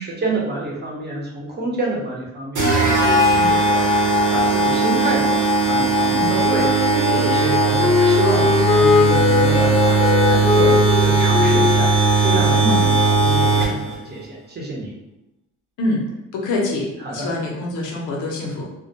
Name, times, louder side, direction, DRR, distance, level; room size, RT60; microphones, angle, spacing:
voice 1, 0.0-14.9 17.0-17.3, right 2 dB, 35° right, -3 dB, 0.8 m, -28 dB
sound 1, 2.6-13.9, right 2 dB, 80° right, 1.0 m, -18 dB
Wind instrument woodwind instrument, 6.4-13.2, left 5 dB, 20° left, 0.6 m, -21 dB
voice 2, 16.3-18.7, left 2 dB, 85° left, -2 dB, 0.7 m, -25 dB
2.2 x 2.1 x 2.7 m, 0.89 s
cardioid pair, 90°, 30 cm